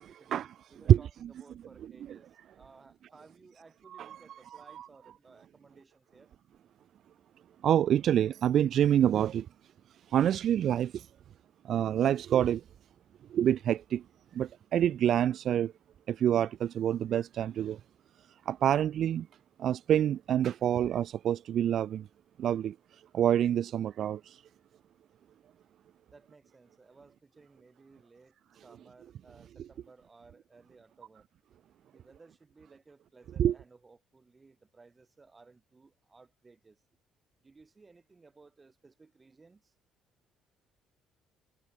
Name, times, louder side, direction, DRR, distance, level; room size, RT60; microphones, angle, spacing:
voice 1, 0.0-6.3 26.1-31.2 31.9-36.8 37.4-39.7, right 4 dB, 20° right, 6.2 m, -58 dB
voice 2, 7.6-9.5 10.1-11.1 11.7-12.6 13.3-14.0 14.3-15.7 16.1-17.8 18.5-19.3 19.6-22.0 22.4-22.7 23.1-24.4 33.4-33.5, right 10 dB, 55° right, 0.3 m, -26 dB
cardioid pair, 115°, 0 cm